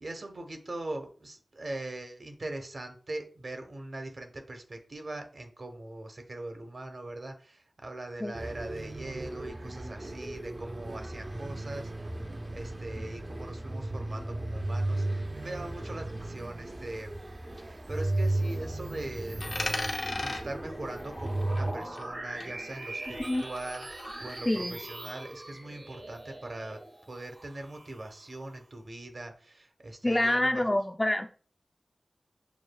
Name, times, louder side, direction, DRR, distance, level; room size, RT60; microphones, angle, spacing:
voice 1, 0.0-12.1 12.5-19.8 20.1-30.6, right 2 dB, 55° right, 0.8 m, -41 dB
sound 1, 8.3-21.7, right 2 dB, 35° right, 0.5 m, -35 dB
sound 2, 17.7-28.6, right 1 dB, 90° right, 1.6 m, -43 dB
Coin (dropping), 19.4-22.2 22.4-24.4, left 2 dB, 75° left, 0.9 m, -38 dB
voice 2, 24.5-24.8 30.0-31.3, left 1 dB, 20° left, 0.4 m, -26 dB
7.0 x 2.3 x 2.2 m
wide cardioid pair, 75°, 0 cm